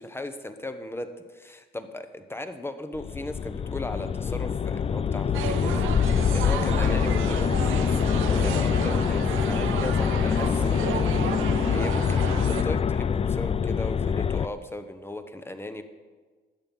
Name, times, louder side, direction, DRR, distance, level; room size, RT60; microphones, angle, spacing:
voice 1, 0.0-1.1 1.7-10.9 11.7-15.8, left 1 dB, 10° left, 8 dB, 1.1 m, -36 dB
sound 1, 3.0-14.5, left 7 dB, 30° left, 0.4 m, -25 dB
sound 2, 5.3-12.6, right 9 dB, 90° right, 0.8 m, -33 dB
13.5 x 8.8 x 5.6 m, 1.4 s
cardioid pair, 90°, 20 cm